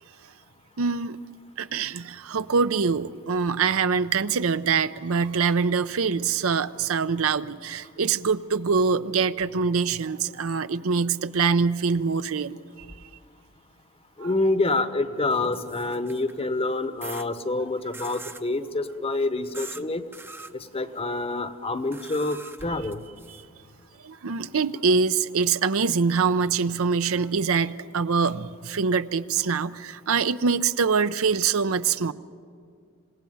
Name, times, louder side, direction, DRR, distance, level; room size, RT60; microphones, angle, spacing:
voice 1, 0.8-1.2 1.6-12.6 14.2-14.3 24.0-32.1, right 5 dB, 70° right, 13 dB, 0.6 m, -24 dB
voice 2, 14.2-20.0 20.7-23.0, left 2 dB, 25° left, 11 dB, 0.9 m, -27 dB
sound 1, 15.3-16.4 17.0-17.3 17.9-18.5 19.5-19.8 20.1-20.5 21.9-23.4, right 3 dB, 10° right, 0.6 m, -42 dB
27.0 x 17.0 x 9.3 m, 2.2 s
head